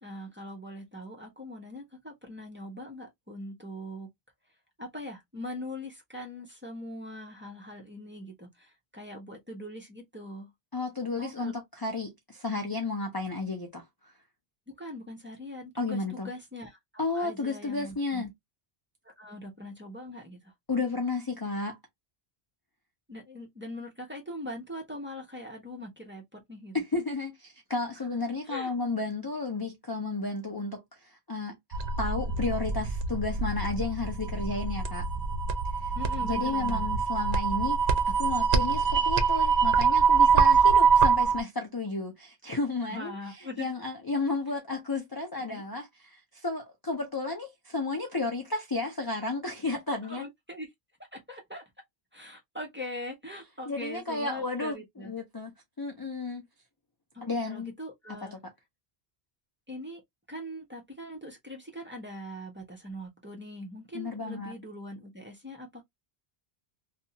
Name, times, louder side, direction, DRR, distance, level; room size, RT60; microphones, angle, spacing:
voice 1, 0.0-4.1 4.8-10.5 11.2-11.5 14.8-16.8 17.1-18.3 19.2-20.5 23.1-26.8 28.5-28.7 35.9-36.8 42.9-43.7 45.4-45.6 50.0-50.7 51.1-51.6 52.1-55.1 57.1-58.4 59.7-60.0 60.3-65.8, left 1 dB, 10° right, 0.8 m, -42 dB
voice 2, 10.7-14.1 15.8-16.3 17.0-18.3 20.7-21.8 26.7-35.1 35.7-35.9 36.2-50.2 53.7-56.4 57.2-57.7 58.2-58.4 63.9-64.5, left 3 dB, 30° left, 0.5 m, -33 dB
sound 1, 31.7-41.4, right 5 dB, 80° right, 0.8 m, -24 dB
2.7 x 2.4 x 2.7 m
omnidirectional pair, 1.1 m